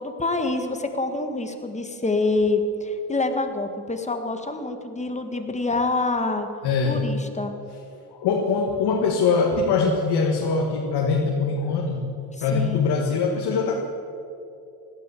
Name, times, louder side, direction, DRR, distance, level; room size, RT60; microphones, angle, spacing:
voice 1, 0.0-6.5 6.9-7.5 12.4-12.8, left 3 dB, 20° left, 6 dB, 1.7 m, -26 dB
voice 2, 6.6-7.1 8.1-12.1 12.4-13.7, left 4 dB, 85° left, -1 dB, 1.8 m, -22 dB
16.5 x 12.0 x 7.1 m, 2.8 s
cardioid pair, 100°, 39 cm